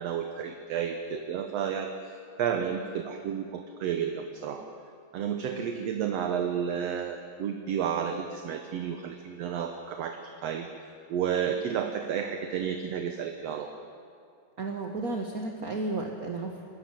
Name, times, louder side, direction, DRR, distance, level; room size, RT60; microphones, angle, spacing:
voice 1, 0.0-4.7 5.1-10.7 11.1-13.7, right 8 dB, 65° right, 5 dB, 2.0 m, -31 dB
voice 2, 5.3-5.6 14.6-16.7, right 2 dB, 45° right, 2 dB, 1.2 m, -33 dB
26.5 x 14.0 x 9.0 m, 2.3 s
omnidirectional pair, 3.4 m